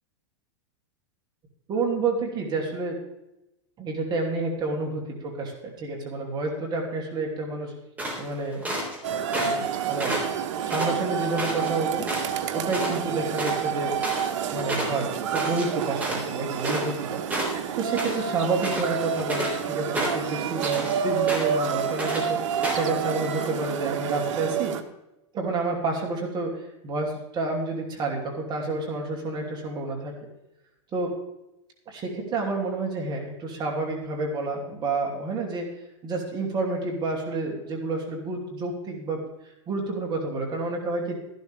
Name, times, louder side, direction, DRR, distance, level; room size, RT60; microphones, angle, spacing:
voice 1, 1.7-3.0 3.8-7.7 8.2-8.6 9.4-10.1 10.6-12.1 12.5-14.0 14.5-17.2 17.8-24.8 25.3-30.1 30.9-31.1 31.9-35.7 36.0-39.2 39.7-41.2, right 3 dB, 25° right, 0 dB, 2.8 m, -29 dB
sound 1, 8.0-9.0 9.3-9.7 10.0-11.7 12.1-12.4 12.7-12.9 13.2-17.0 17.3-18.2 18.5-19.6 19.9-20.9 21.3-21.7 22.0-22.2 22.6-22.9, right 1 dB, 10° right, 3.5 m, -30 dB
sound 2, 9.0-24.8, right 8 dB, 70° right, 1.2 m, -29 dB
13.5 x 12.0 x 3.5 m, 0.92 s
supercardioid pair, 140°, 16 cm